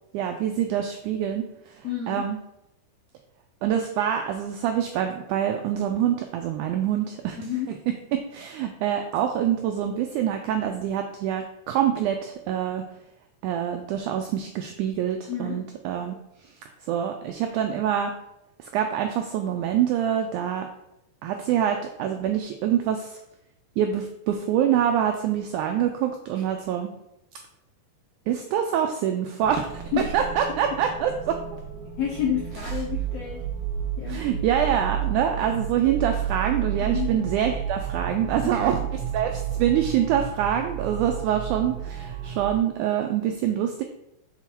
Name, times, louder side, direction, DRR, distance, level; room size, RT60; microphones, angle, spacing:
voice 1, 0.1-2.4 3.6-7.4 8.1-12.9 13.4-16.2 16.9-18.1 18.6-20.7 21.2-23.2 23.8-26.9 28.3-29.8 30.1-31.6 32.6-32.7 34.1-43.8, right 9 dB, 85° right, 4 dB, 1.7 m, -25 dB
voice 2, 1.8-2.3 7.4-7.7 15.3-15.6 29.9-30.1 32.0-33.4 34.0-34.3 36.8-37.2 38.6-38.7, left 8 dB, 75° left, -3 dB, 1.5 m, -29 dB
sound 1, 29.4-42.6, right 9 dB, 70° right, 1.6 m, -32 dB
7.2 x 3.8 x 4.5 m, 0.85 s
omnidirectional pair, 4.0 m